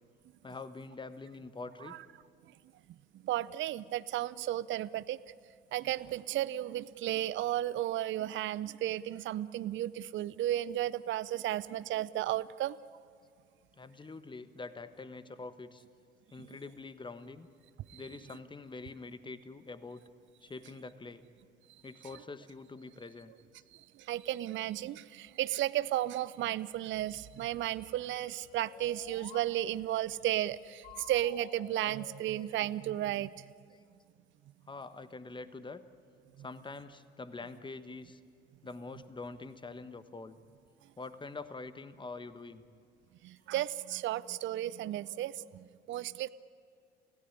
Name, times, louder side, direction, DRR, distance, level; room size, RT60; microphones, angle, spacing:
voice 1, 0.4-1.9 13.8-15.8 16.3-17.5 17.9-20.0 20.4-21.3 21.8-23.3 34.7-35.9 36.4-38.2 38.6-40.4 41.0-42.6, left 3 dB, 15° left, 12 dB, 1.3 m, -45 dB
voice 2, 3.1-5.2 5.7-12.8 17.9-18.0 23.7-33.5 43.2-46.3, right 13 dB, 40° right, 18 dB, 0.6 m, -34 dB
sound 1, 27.7-29.5 30.8-32.9, left 9 dB, 70° left, 1.5 m, -53 dB
28.0 x 17.0 x 10.0 m, 2.2 s
figure-of-eight pair, 60°, 29 cm